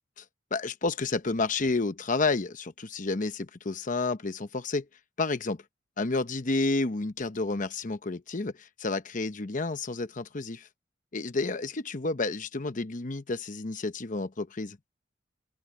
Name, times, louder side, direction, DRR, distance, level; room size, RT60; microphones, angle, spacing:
voice 1, 0.5-4.9 5.2-5.6 6.0-10.7 11.1-14.8, left 3 dB, 45° left, 0.9 m, -30 dB
open air
head